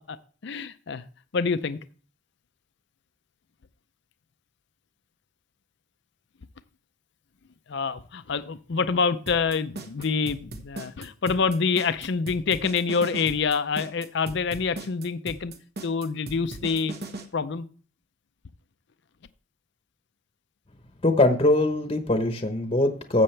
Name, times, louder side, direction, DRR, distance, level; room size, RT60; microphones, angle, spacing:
voice 1, 0.4-1.0 1.3-1.8 7.7-15.5 15.8-16.9 17.3-17.7, left 5 dB, 55° left, 12 dB, 0.5 m, -26 dB
sound 1, 9.3-17.2, right 2 dB, 50° right, 1.2 m, -38 dB
voice 2, 21.0-23.2, left 2 dB, 25° left, 6 dB, 0.9 m, -22 dB
13.5 x 7.8 x 3.3 m, 0.42 s
head